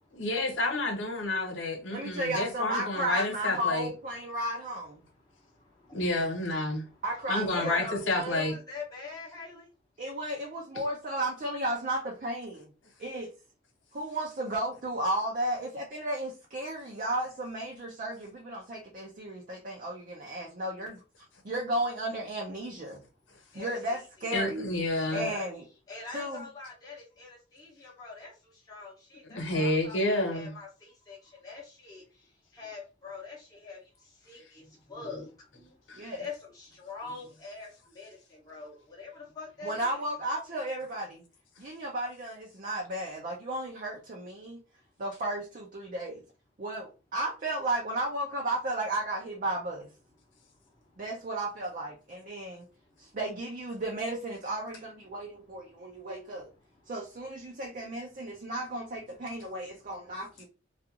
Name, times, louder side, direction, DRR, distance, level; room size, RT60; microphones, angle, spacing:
voice 1, 0.1-3.9 5.9-6.9 7.3-8.5 24.3-25.3 29.3-30.5 35.9-36.0, left 2 dB, 70° left, 0.8 m, -29 dB
voice 2, 1.9-5.0 7.0-8.4 10.0-12.7 13.0-13.3 13.9-21.0 21.5-23.0 23.5-24.7 25.1-25.6 26.1-26.5 35.9-36.2 39.6-41.2 41.6-44.6 45.0-46.2 46.6-49.9 51.0-52.7 53.0-56.5 56.9-60.5, right 1 dB, 45° right, 0.5 m, -34 dB
voice 3, 5.0-6.1 6.6-7.0 7.4-8.0 8.3-9.7 23.5-24.5 25.0-25.5 25.9-32.0 32.5-35.7 36.2-40.0 55.2-55.3, left 4 dB, 20° left, 0.7 m, -43 dB
2.4 x 2.4 x 2.8 m
head